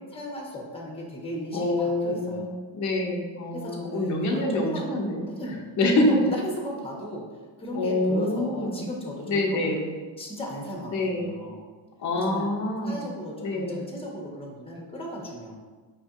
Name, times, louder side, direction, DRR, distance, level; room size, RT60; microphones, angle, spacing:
voice 1, 0.1-2.5 3.5-4.8 5.3-9.8 10.2-11.6 12.2-12.5 12.8-15.5, equal, 10° left, -2 dB, 1.0 m, -36 dB
voice 2, 1.5-2.4 2.7-5.3 5.8-6.2 7.7-8.8 9.3-9.9 10.9-11.3 12.0-13.0 13.4-13.9, left 1 dB, 40° left, 0 dB, 0.7 m, -26 dB
4.9 x 2.6 x 2.4 m, 1.4 s
supercardioid pair, 65°, 47 cm